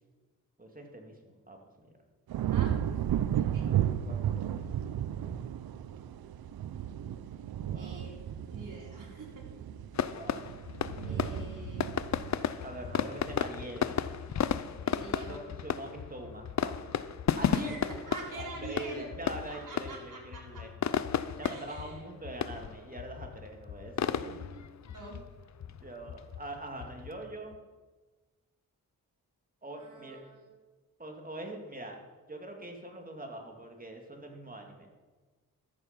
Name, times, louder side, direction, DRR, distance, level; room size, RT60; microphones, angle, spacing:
voice 1, 0.6-1.9 3.7-4.7 7.7-8.1 10.0-10.5 11.0-11.3 12.6-14.0 15.0-17.7 18.3-20.7 21.4-24.4 25.6-27.6 29.6-30.2 31.0-32.0 32.3-34.9, right 1 dB, 25° right, 2 dB, 2.4 m, -44 dB
sound 1, 2.3-13.6 14.0-14.5, right 10 dB, 75° right, 0.6 m, -34 dB
voice 2, 2.5-3.0 3.4-3.7 7.8-9.4 11.1-11.9 14.8-15.5 17.5-19.1 19.5-20.6 21.4-22.1 24.2-25.2 29.8-30.5, right 3 dB, 60° right, -3 dB, 4.1 m, -46 dB
sound 2, 9.9-27.6, left 8 dB, 50° left, 0.6 m, -34 dB
13.0 x 6.8 x 5.3 m, 1.3 s
cardioid pair, 60°, 36 cm